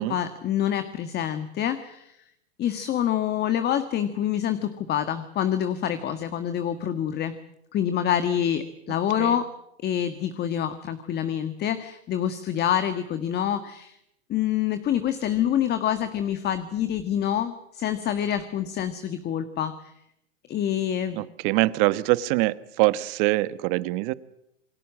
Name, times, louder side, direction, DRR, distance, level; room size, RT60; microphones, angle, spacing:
voice 1, 0.0-2.2 2.6-7.4 7.7-9.5 9.8-14.0 14.3-19.9 20.5-21.3, left 10 dB, 30° left, 10 dB, 1.6 m, -26 dB
voice 2, 21.1-24.1, right 19 dB, 45° right, 16 dB, 1.3 m, -24 dB
28.5 x 21.0 x 7.5 m, 0.78 s
hypercardioid pair, 120°, 35 cm